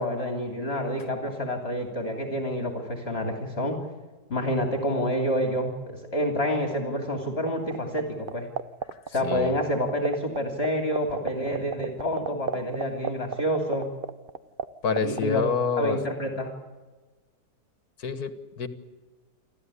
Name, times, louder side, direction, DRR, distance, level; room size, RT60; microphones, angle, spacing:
voice 1, 0.0-3.8 4.3-8.5 9.1-13.9 15.0-15.4 15.8-16.5, equal, 40° left, 4 dB, 3.1 m, -28 dB
sound 1, 7.5-8.0 8.3-10.4 10.6-10.7 10.9-14.6 14.9-15.2, right 7 dB, 45° right, 0.8 m, -28 dB
voice 2, 9.2-9.6 14.8-16.0 18.0-18.7, left 5 dB, 70° left, 11 dB, 2.1 m, -27 dB
28.5 x 13.5 x 9.9 m, 1.3 s
omnidirectional pair, 1.7 m